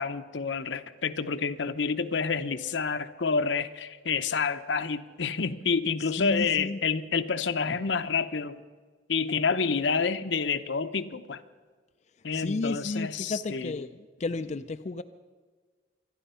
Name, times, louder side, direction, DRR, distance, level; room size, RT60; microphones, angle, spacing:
voice 1, 0.0-8.6 9.1-11.4 12.2-13.7, left 5 dB, 75° left, 11 dB, 0.8 m, -28 dB
voice 2, 6.2-6.8 12.3-13.9 14.2-15.0, left 3 dB, 40° left, 9 dB, 0.4 m, -32 dB
25.5 x 10.0 x 5.6 m, 1.5 s
head